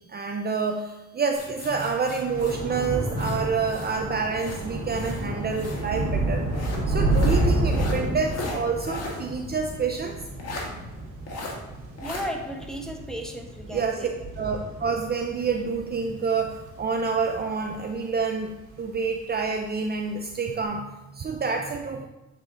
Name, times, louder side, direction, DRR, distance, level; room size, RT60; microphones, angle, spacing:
voice 1, 0.1-6.4 6.9-10.2 13.7-14.1 14.4-22.0, right 5 dB, 35° right, 3 dB, 0.6 m, -28 dB
sound 1, 1.3-4.0 4.3-5.9 6.5-9.3 9.6-9.7 10.4-10.7 11.3-11.6 12.0-12.3, left 2 dB, 55° left, 1.5 m, -37 dB
Thunder / Rain, 1.9-18.3 18.7-19.1 19.4-19.6, right 1 dB, 65° right, 2.1 m, -30 dB
voice 2, 12.0-14.1, equal, ahead, 1 dB, 1.1 m, -34 dB
8.4 x 3.7 x 3.8 m, 0.99 s
cardioid pair, 90°, 30 cm